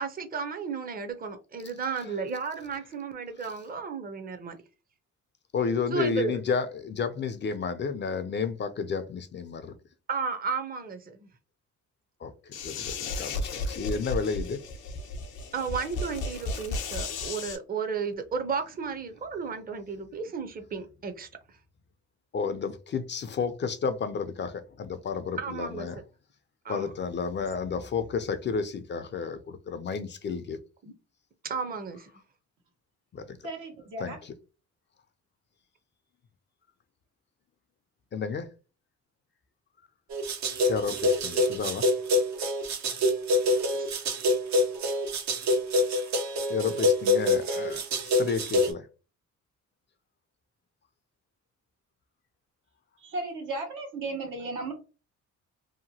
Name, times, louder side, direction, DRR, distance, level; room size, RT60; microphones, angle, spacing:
voice 1, 0.0-4.6 5.9-6.4 10.1-11.3 15.5-21.3 25.4-25.9 26.6-26.9 30.8-30.9 31.4-32.1 43.7-44.0, right 5 dB, 30° right, 0.6 m, -33 dB
voice 2, 5.5-9.7 12.2-14.6 22.3-26.0 26.7-30.6 33.1-33.4 34.0-34.3 38.1-38.5 40.7-41.9 46.5-48.9, left 5 dB, 40° left, 0.4 m, -31 dB
sound 1, 12.5-17.6, left 3 dB, 85° left, 0.6 m, -34 dB
voice 3, 33.4-34.2 53.0-54.7, right 2 dB, 80° right, 1.2 m, -35 dB
sound 2, 40.1-48.7, left 1 dB, 65° right, 0.7 m, -26 dB
2.9 x 2.1 x 2.7 m
cardioid pair, 90°, 30 cm